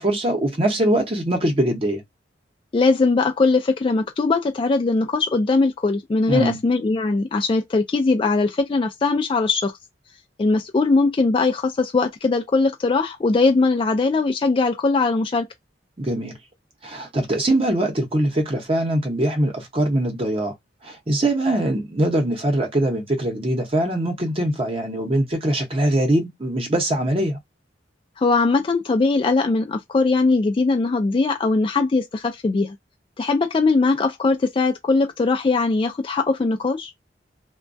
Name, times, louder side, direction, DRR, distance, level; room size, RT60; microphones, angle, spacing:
voice 1, 0.0-2.0 6.3-6.6 16.0-16.4 16.8-20.5 20.8-27.4, right 1 dB, 30° right, 0.7 m, -22 dB
voice 2, 2.7-9.7 10.4-15.5 28.2-32.8 33.2-36.9, left 3 dB, 30° left, 0.3 m, -20 dB
2.3 x 2.2 x 2.6 m
head